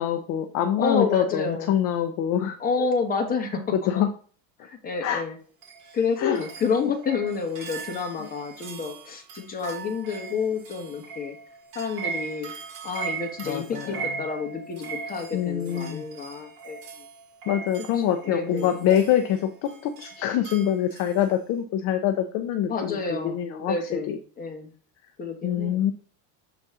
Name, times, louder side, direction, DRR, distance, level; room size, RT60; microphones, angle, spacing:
voice 1, 0.0-2.6 3.7-4.1 5.0-5.2 6.2-6.4 13.4-14.1 15.3-16.0 17.5-24.2 25.4-25.9, left 10 dB, 35° left, 6 dB, 0.4 m, -25 dB
voice 2, 0.8-1.8 2.6-3.6 3.9-4.0 4.6-5.4 5.9-11.4 11.7-12.5 12.8-17.1 18.2-18.7 22.7-24.7 25.2-25.8, left 5 dB, 20° left, 2 dB, 1.1 m, -29 dB
sound 1, 5.6-21.2, right 5 dB, 80° right, 1.8 m, -39 dB
6.8 x 4.0 x 3.6 m, 0.43 s
cardioid pair, 165°, 47 cm